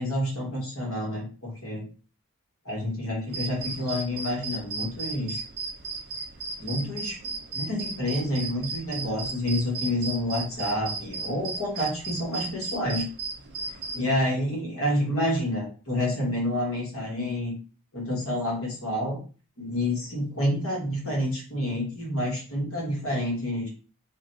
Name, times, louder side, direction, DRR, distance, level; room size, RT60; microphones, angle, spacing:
voice 1, 0.0-1.9 2.6-5.4 6.6-13.0 13.9-17.6 17.9-19.2 19.6-23.7, left 1 dB, 65° left, -2 dB, 1.3 m, -28 dB
sound 1, 3.3-14.0, right 4 dB, 50° right, 0.6 m, -36 dB
2.5 x 2.2 x 4.0 m, 0.35 s
head